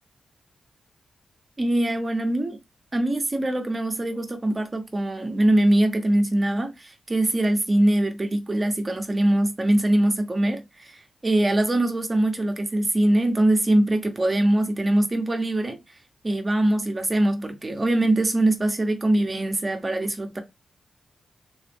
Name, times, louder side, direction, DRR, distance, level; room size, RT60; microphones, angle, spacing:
voice 1, 1.6-2.6 2.9-15.8 16.2-20.4, right 1 dB, 30° right, 1.0 m, -22 dB
3.9 x 2.3 x 3.5 m
cardioid pair, 70°, 0 cm